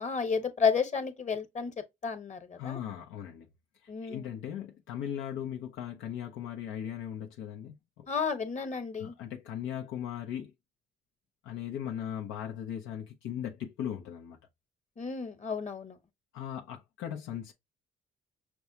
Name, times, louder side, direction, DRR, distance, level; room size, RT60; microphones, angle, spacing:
voice 1, 0.0-1.7 2.0-2.8 3.9-4.4 8.1-9.1 15.0-16.0, left 5 dB, 35° left, 1.1 m, -32 dB
voice 2, 2.6-3.5 3.8-8.1 9.0-10.5 11.4-14.4 16.3-17.5, left 10 dB, 90° left, 0.7 m, -38 dB
6.0 x 2.3 x 2.7 m
cardioid pair, 90°, 20 cm